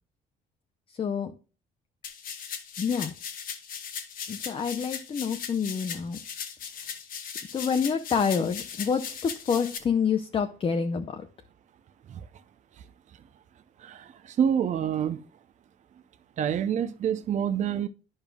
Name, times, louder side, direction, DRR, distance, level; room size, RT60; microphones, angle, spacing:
voice 1, 1.0-1.3 2.8-3.1 4.3-6.2 7.5-11.3, left 6 dB, 35° left, 0.6 m, -27 dB
sound 1, 2.0-9.8, left 7 dB, 60° left, 1.1 m, -38 dB
voice 2, 13.8-15.2 16.4-17.9, right 8 dB, 45° right, 0.6 m, -27 dB
11.0 x 5.4 x 2.3 m
cardioid pair, 110°, 17 cm